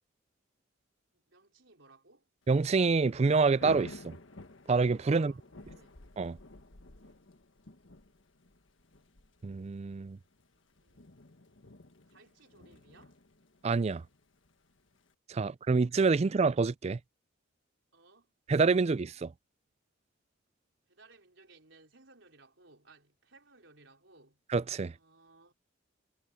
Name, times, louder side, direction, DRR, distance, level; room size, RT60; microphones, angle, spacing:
voice 1, 1.1-2.3 5.1-6.1 10.7-11.0 12.1-13.2 17.9-18.3 20.9-24.4 24.9-25.5, right 3 dB, 70° right, 4.5 m, -60 dB
Thunder / Rain, 2.5-15.1, left 2 dB, 70° left, 1.6 m, -53 dB
voice 2, 2.5-4.1 4.7-5.3 6.2-6.4 9.4-10.2 13.6-14.0 15.3-17.0 18.5-19.3 24.5-24.9, right 4 dB, 35° right, 0.4 m, -27 dB
head